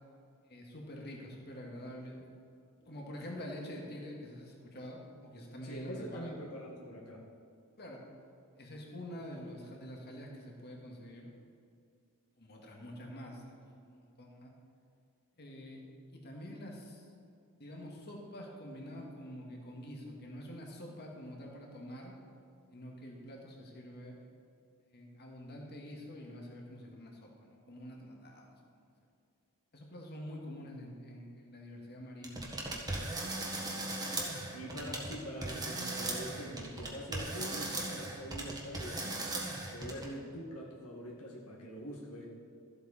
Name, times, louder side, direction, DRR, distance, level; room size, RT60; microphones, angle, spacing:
voice 1, 0.4-2.2 2.9-6.4 7.8-8.0 8.6-11.3 12.4-14.5 15.4-15.8 16.1-17.0 17.5-22.1 22.7-24.2 24.8-28.9 29.7-32.6, equal, 50° left, -1 dB, 1.9 m, -46 dB
voice 2, 5.6-7.2 34.5-39.2 39.7-42.2, equal, 80° left, -3 dB, 1.9 m, -44 dB
sound 1, 32.2-35.2 35.4-40.1, right 2 dB, 20° right, 1.5 m, -38 dB
13.5 x 7.9 x 4.2 m, 2.4 s
head